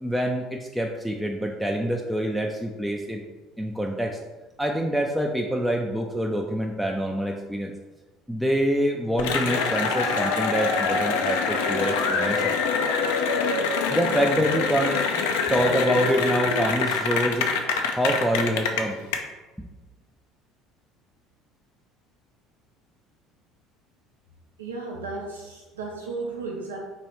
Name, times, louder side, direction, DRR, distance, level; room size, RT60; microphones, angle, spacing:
voice 1, 0.0-3.2 3.6-4.2 4.6-7.7 8.3-12.5 13.9-19.0, equal, 5° right, 0 dB, 0.4 m, -26 dB
Cheering / Applause, 9.2-19.2, left 5 dB, 70° left, 0.4 m, -25 dB
voice 2, 24.6-26.8, right 3 dB, 80° right, -2 dB, 0.5 m, -34 dB
3.0 x 3.0 x 4.4 m, 1.2 s
figure-of-eight pair, 60°, 0 cm